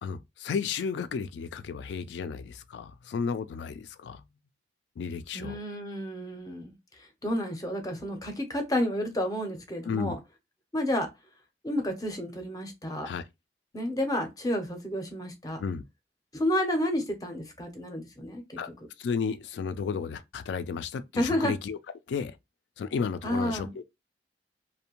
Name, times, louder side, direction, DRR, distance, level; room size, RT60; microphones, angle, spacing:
voice 1, 0.0-4.2 5.0-5.6 9.8-10.2 13.0-13.2 15.6-15.8 18.6-18.7 19.0-21.8 22.1-22.4 22.8-23.8, left 6 dB, 75° left, 0.3 m, -33 dB
voice 2, 5.3-6.7 7.2-10.2 10.7-11.1 11.6-13.1 13.7-15.6 16.3-18.6 21.2-21.5 23.2-23.7, left 1 dB, 20° left, 0.5 m, -30 dB
2.5 x 2.1 x 2.8 m
head